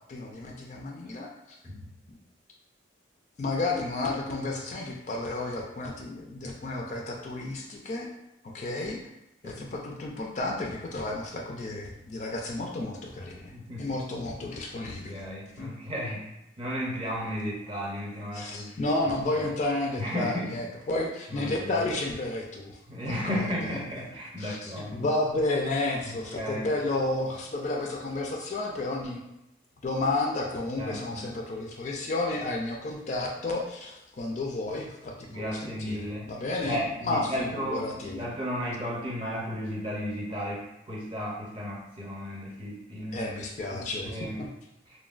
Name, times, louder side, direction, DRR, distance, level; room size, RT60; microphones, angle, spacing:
voice 1, 0.1-1.3 3.4-8.1 8.4-9.0 9.4-15.2 15.6-15.7 18.3-23.2 24.4-29.2 29.8-38.2 43.1-44.5, left 2 dB, 40° left, 0 dB, 0.3 m, -32 dB
voice 2, 13.5-13.9 14.8-16.3 16.6-18.8 20.0-20.6 21.3-21.8 22.9-25.1 26.0-26.7 30.8-31.2 35.3-43.2 43.7-44.4, equal, 25° right, -4 dB, 0.6 m, -34 dB
3.1 x 2.1 x 2.4 m, 0.87 s
head